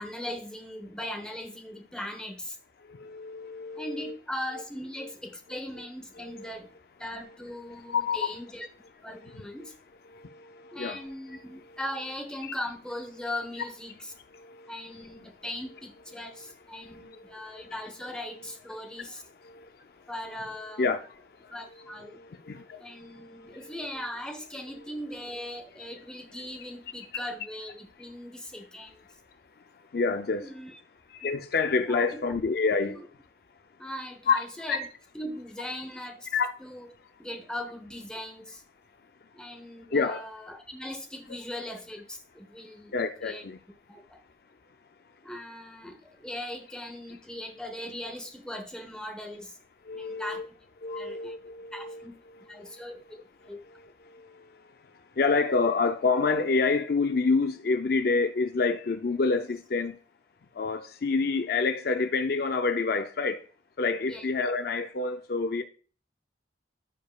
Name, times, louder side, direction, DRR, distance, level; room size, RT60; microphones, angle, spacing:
voice 1, 0.0-2.6 3.8-6.7 7.0-8.7 9.0-9.7 10.7-14.1 14.7-19.2 20.1-20.8 21.5-22.2 22.8-29.0 30.4-30.8 31.9-32.1 32.9-33.0 33.8-34.9 35.1-36.3 36.6-36.9 37.2-38.6 39.3-42.9 43.2-43.4 43.9-44.2 45.2-49.6 49.9-50.4 51.0-51.4 51.7-52.1 52.5-53.6 64.1-64.3, left 1 dB, 5° left, 1.1 m, -39 dB
voice 2, 2.8-4.2 5.0-5.1 5.5-5.9 6.2-6.5 7.0-7.2 7.7-8.4 9.1-9.5 10.1-11.8 12.4-12.5 14.3-15.2 16.3-16.5 16.7-17.8 19.0-19.1 19.4-20.0 20.7-23.7 29.7-30.5 31.1-33.0 34.3-34.4 34.7-34.8 36.3-36.5 39.9-40.3 42.9-43.6 49.8-50.5 50.8-60.0 60.5-63.4 63.8-65.6, left 4 dB, 55° left, 0.5 m, -29 dB
14.5 x 5.0 x 2.4 m
head